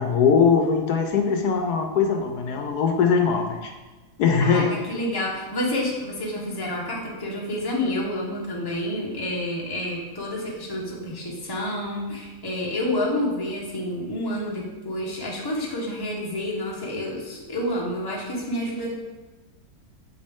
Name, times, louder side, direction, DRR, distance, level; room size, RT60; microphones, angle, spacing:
voice 1, 0.0-3.7 4.2-4.7, left 6 dB, 75° left, 4 dB, 1.2 m, -21 dB
voice 2, 4.4-18.9, left 1 dB, 15° left, -3 dB, 1.1 m, -29 dB
7.0 x 5.2 x 3.6 m, 1.2 s
omnidirectional pair, 1.8 m